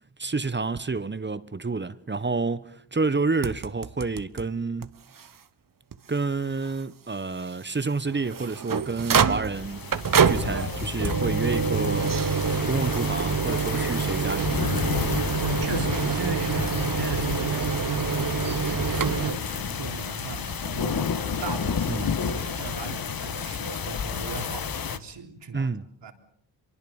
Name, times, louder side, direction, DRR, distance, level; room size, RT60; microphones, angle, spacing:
voice 1, 0.2-5.0 6.1-9.8 10.3-12.1 12.7-14.9 21.9-22.1 25.5-25.9, right 3 dB, 25° right, 1.1 m, -29 dB
sound 1, 3.4-4.4 4.8-4.9 5.2-5.3 5.9-6.0 8.1-19.3, right 6 dB, 45° right, 1.3 m, -26 dB
sound 2, 9.5-25.0, left 6 dB, 50° left, 1.6 m, -31 dB
voice 2, 15.3-25.7 26.0-26.1, right 5 dB, 65° right, 3.9 m, -36 dB
24.0 x 23.5 x 7.2 m
cardioid pair, 60°, 46 cm